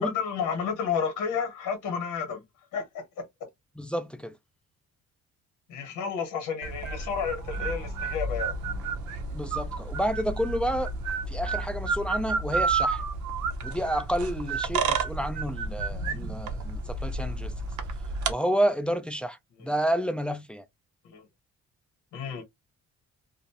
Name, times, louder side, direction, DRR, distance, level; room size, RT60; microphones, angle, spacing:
voice 1, 0.0-2.4 2.7-3.0 5.7-8.5 19.6-19.7 21.0-21.2 22.1-22.4, left 6 dB, 90° left, 1.0 m, -31 dB
voice 2, 3.8-4.4 9.3-10.9 11.3-13.0 13.6-17.5 18.3-19.4 19.6-20.6, equal, 5° left, 0.3 m, -30 dB
sound 1, 6.6-18.3, right 4 dB, 75° right, 0.7 m, -31 dB
2.6 x 2.1 x 2.7 m
cardioid pair, 90°, 30 cm